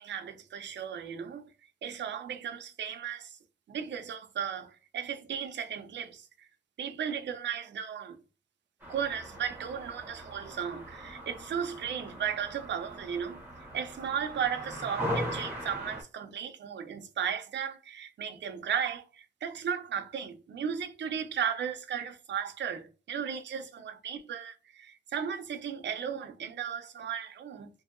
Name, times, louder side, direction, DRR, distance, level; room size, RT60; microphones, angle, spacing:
voice 1, 0.0-1.5 1.8-3.4 3.7-6.5 6.8-8.2 8.9-13.4 13.7-27.7, right 8 dB, 70° right, 0.6 m, -35 dB
sound 1, 8.8-16.0, equal, 10° right, 0.9 m, -39 dB
2.7 x 2.7 x 2.5 m
wide cardioid pair, 155°, 19 cm